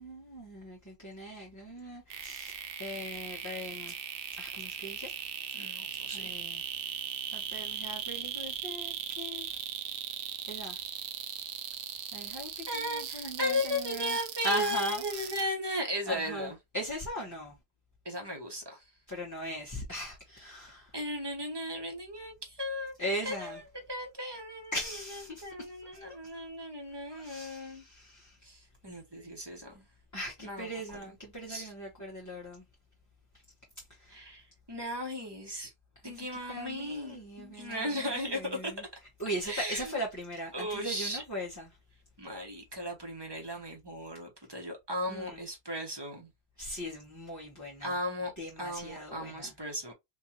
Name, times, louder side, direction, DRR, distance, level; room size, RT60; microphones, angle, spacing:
voice 1, 0.0-3.9 4.4-5.1 6.1-6.7 7.3-9.5 10.5-10.8 12.1-14.2 14.4-15.4 16.1-17.6 19.1-20.9 23.0-23.6 24.7-25.7 26.1-26.2 27.1-28.4 30.1-32.6 33.9-34.3 36.0-38.8 39.2-41.7 45.1-45.4 46.6-48.0 48.4-49.5, equal, 15° left, 1.0 m, -39 dB
sound 1, 2.1-15.4, right 9 dB, 85° right, 1.0 m, -38 dB
voice 2, 5.5-6.4 12.7-16.6 18.0-18.8 20.9-23.0 23.2-23.6 23.9-24.7 25.4-27.8 28.4-29.8 30.4-30.7 31.5-31.7 34.1-34.4 34.7-35.7 36.0-38.7 39.4-40.0 40.5-41.2 42.2-46.3 47.8-48.3 48.6-49.9, equal, 20° right, 1.2 m, -36 dB
3.8 x 2.6 x 2.8 m
omnidirectional pair, 1.2 m